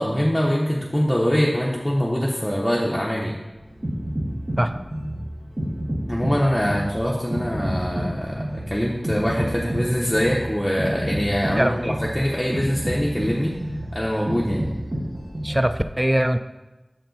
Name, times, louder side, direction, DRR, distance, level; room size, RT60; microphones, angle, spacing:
voice 1, 0.0-3.4 6.1-13.5 13.9-14.7, equal, 15° left, -4 dB, 0.8 m, -23 dB
sound 1, 3.5-15.8, equal, 60° right, 1.2 m, -29 dB
voice 2, 11.6-12.0 15.4-16.4, right 1 dB, 20° right, 10 dB, 0.3 m, -21 dB
6.5 x 4.3 x 4.0 m, 1.1 s
wide cardioid pair, 40°, 0 cm